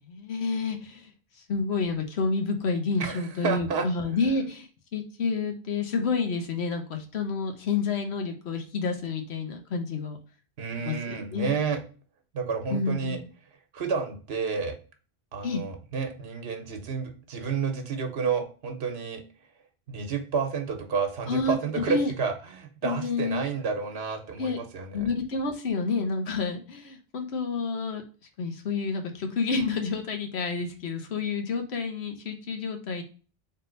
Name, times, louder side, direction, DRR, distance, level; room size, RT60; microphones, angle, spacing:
voice 1, 0.1-1.1 1.5-10.2 10.9-11.5 12.7-13.3 15.4-15.6 21.3-22.1 22.8-23.5 24.4-24.6 24.9-28.0 28.4-33.0, left 4 dB, 85° left, 5 dB, 1.1 m, -29 dB
voice 2, 3.0-3.9 10.6-11.8 12.3-13.2 13.7-14.8 15.3-19.2 19.9-25.0, right 5 dB, 75° right, 5 dB, 1.0 m, -30 dB
3.7 x 2.8 x 3.7 m, 0.37 s
omnidirectional pair, 1.1 m